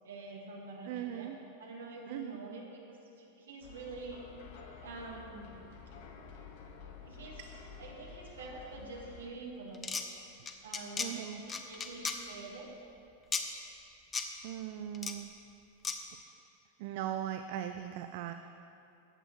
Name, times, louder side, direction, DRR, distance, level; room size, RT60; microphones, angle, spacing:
voice 1, 0.0-1.3 1.6-4.2 4.8-5.6 7.0-7.4 7.8-10.0 10.6-12.8, right 3 dB, 65° right, -1 dB, 2.2 m, -46 dB
voice 2, 0.9-1.4 2.1-2.4 11.0-11.4 14.4-15.3 16.8-18.3, right 11 dB, 50° right, 8 dB, 0.5 m, -39 dB
sound 1, 3.6-9.3, left 6 dB, 50° left, 1.1 m, -51 dB
sound 2, 9.7-10.0 10.5-11.1 11.5-12.2 13.3-13.4 14.1-14.3 14.9-15.1 15.8-16.0, left 5 dB, 20° left, 0.8 m, -34 dB
14.5 x 8.9 x 4.6 m, 2.6 s
figure-of-eight pair, 90°, 0 cm